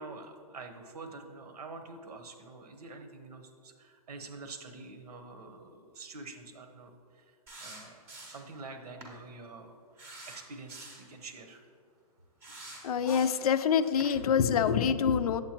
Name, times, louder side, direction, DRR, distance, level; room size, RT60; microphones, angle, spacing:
voice 1, 0.0-7.3 7.6-11.6, right 3 dB, 90° right, 6 dB, 1.0 m, -47 dB
sound 1, 7.5-8.5 9.0-9.2 10.0-11.1 12.4-13.5 14.0-14.1, right 2 dB, 10° right, 0.6 m, -47 dB
voice 2, 12.8-15.4, left 7 dB, 70° left, 13 dB, 0.4 m, -26 dB
7.9 x 7.8 x 2.9 m, 2.3 s
hypercardioid pair, 175°, 19 cm